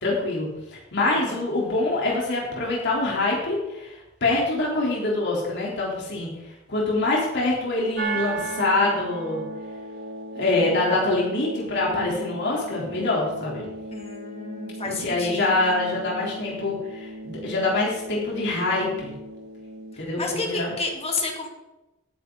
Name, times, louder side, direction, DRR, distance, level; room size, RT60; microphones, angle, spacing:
voice 1, 0.0-3.9 4.2-6.3 6.7-9.4 10.3-13.7 14.9-19.1 20.0-20.7, left 2 dB, 55° left, -3 dB, 3.6 m, -25 dB
sound 1, 8.0-20.0, right 2 dB, 50° right, 1.3 m, -36 dB
voice 2, 13.9-15.7 19.9-21.5, left 3 dB, 30° left, 1 dB, 2.4 m, -31 dB
17.5 x 9.6 x 4.0 m, 0.99 s
head